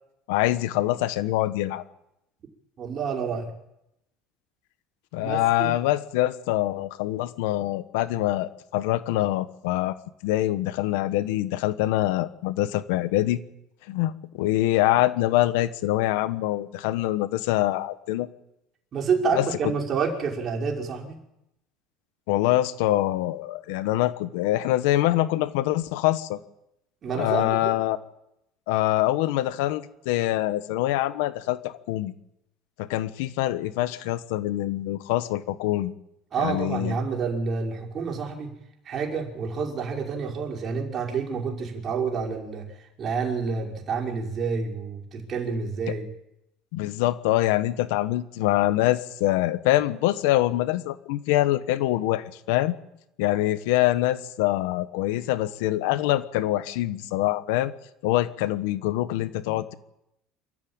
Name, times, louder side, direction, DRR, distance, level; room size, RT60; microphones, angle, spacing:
voice 1, 0.3-1.8 5.1-10.0 10.2-13.4 13.9-18.3 19.3-19.5 22.3-26.4 27.1-28.0 28.7-32.1 32.8-35.9 36.4-37.0 46.7-52.7 53.2-57.7 58.0-59.7, left 15 dB, 85° left, 13 dB, 1.3 m, -24 dB
voice 2, 2.8-3.5 5.2-5.7 18.9-21.2 27.0-27.8 36.3-38.5 38.9-42.7 43.0-46.1, right 5 dB, 35° right, 1 dB, 5.4 m, -28 dB
27.0 x 14.0 x 8.9 m, 0.84 s
cardioid pair, 125°, 0 cm